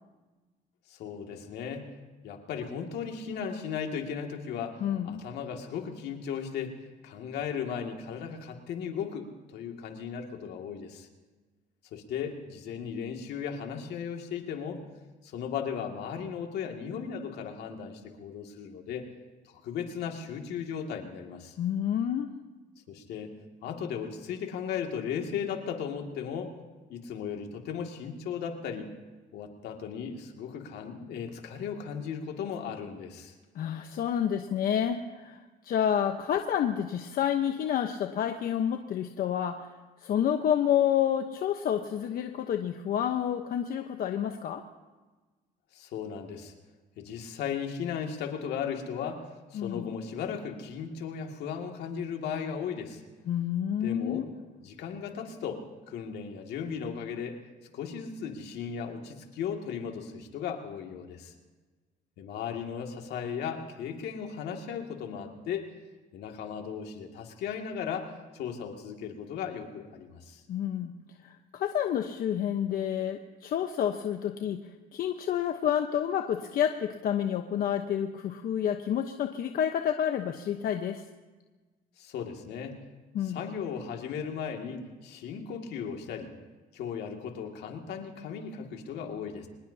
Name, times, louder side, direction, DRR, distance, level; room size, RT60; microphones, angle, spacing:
voice 1, 0.9-1.9 2.2-6.7 7.0-11.1 11.9-14.8 15.2-19.1 19.4-21.6 22.9-23.3 23.6-26.5 26.9-28.9 29.3-33.3 45.7-46.5 47.0-53.0 53.8-54.3 54.6-57.4 57.7-61.3 62.2-65.7 66.1-70.4 82.0-82.8 83.2-86.3 86.7-89.5, left 7 dB, 75° left, 3 dB, 2.3 m, -36 dB
voice 2, 4.8-5.2 21.6-22.3 33.5-39.7 40.0-44.6 49.5-50.0 53.3-54.3 70.5-70.9 71.2-81.0 83.1-83.4, left 9 dB, 60° left, 5 dB, 1.0 m, -29 dB
24.5 x 20.0 x 2.8 m, 1.3 s
cardioid pair, 110°, 17 cm